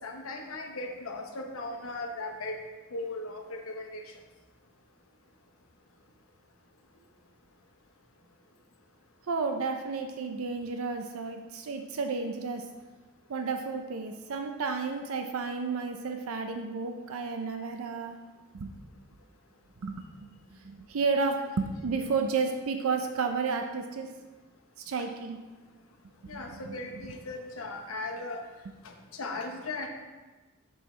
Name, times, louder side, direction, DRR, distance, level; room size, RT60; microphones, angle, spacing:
voice 1, 0.0-2.6 2.9-4.0 25.0-25.1 26.3-28.4 28.8-29.9, left 2 dB, 80° left, 3 dB, 0.9 m, -37 dB
voice 2, 9.3-12.6 13.3-18.2 18.5-18.7 19.8-20.0 20.6-24.1 24.8-25.4 26.2-26.8, right 4 dB, 85° right, 5 dB, 0.5 m, -32 dB
6.8 x 5.6 x 3.2 m, 1.2 s
head